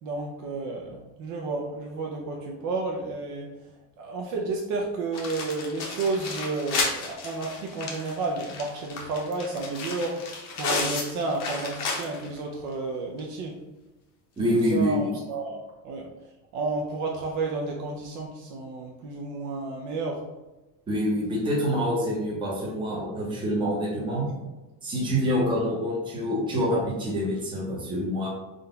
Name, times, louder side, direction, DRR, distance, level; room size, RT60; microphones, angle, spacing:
voice 1, 0.0-3.5 4.0-10.2 10.6-13.6 14.5-16.1 16.5-20.2, right 3 dB, 50° right, 0 dB, 0.5 m, -31 dB
sound 1, 5.1-12.4 12.7-12.8 13.2-13.3 14.5-14.6, left 3 dB, 45° left, 0.7 m, -33 dB
voice 2, 14.4-15.1 20.9-24.4 24.8-28.3, equal, 15° right, -3 dB, 0.7 m, -26 dB
3.7 x 2.2 x 3.8 m, 1.1 s
cardioid pair, 180°, 38 cm